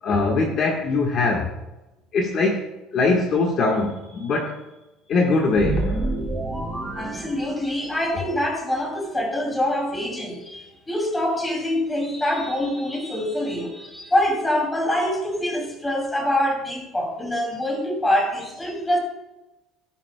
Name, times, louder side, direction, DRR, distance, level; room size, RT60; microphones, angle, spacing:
voice 1, 0.0-1.5 2.1-2.7 2.9-4.6 5.1-6.1, left 3 dB, 35° left, 0 dB, 1.4 m, -22 dB
sound 1, 5.5-8.1, right 2 dB, 10° right, 1.3 m, -28 dB
voice 2, 7.0-19.0, left 1 dB, 10° left, 0 dB, 2.6 m, -25 dB
17.5 x 10.0 x 2.2 m, 1.0 s
cardioid pair, 175°, 0 cm